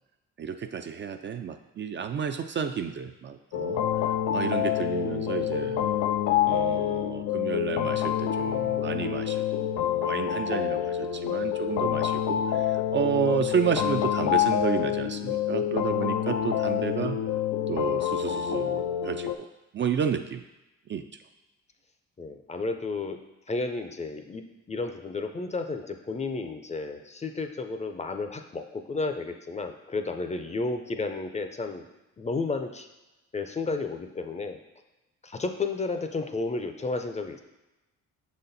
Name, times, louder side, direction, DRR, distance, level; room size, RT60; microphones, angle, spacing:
voice 1, 0.4-3.8 4.3-5.8 6.4-17.2 17.7-19.5 19.7-20.4 20.9-21.0, right 7 dB, 40° right, 7 dB, 0.4 m, -31 dB
sound 1, 3.5-19.4, left 10 dB, 80° left, 0.5 m, -27 dB
voice 2, 22.2-23.2 23.5-31.9 32.2-32.9 33.3-34.6 35.2-37.4, left 3 dB, 25° left, 6 dB, 0.5 m, -32 dB
6.2 x 4.2 x 4.0 m, 1.0 s
cardioid pair, 90°, 30 cm